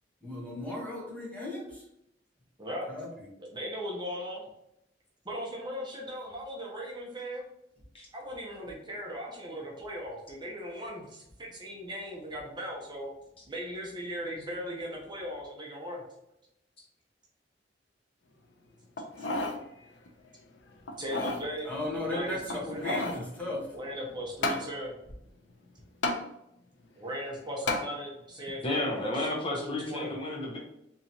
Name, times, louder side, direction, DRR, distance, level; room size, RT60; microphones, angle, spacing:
voice 1, 0.2-1.8 2.9-3.1 21.6-22.4 22.7-23.6, left 1 dB, 10° left, -5 dB, 1.1 m, -35 dB
voice 2, 1.0-1.3 2.6-2.9 3.4-4.4 5.2-7.4 8.1-13.1 13.5-16.0 19.2-19.3 20.9-21.7 22.1-23.1 23.7-24.9 27.0-29.2 29.6-30.2, equal, 25° right, -1 dB, 0.7 m, -38 dB
sound 1, 19.0-19.6 20.1-20.2 20.9-21.5 22.5-23.2 24.4-24.7 26.0-26.2 27.7-27.9 28.5-28.6, left 2 dB, 75° left, 0.5 m, -31 dB
voice 3, 28.6-30.6, left 2 dB, 30° left, -1 dB, 0.6 m, -32 dB
3.8 x 2.9 x 2.8 m, 0.81 s
head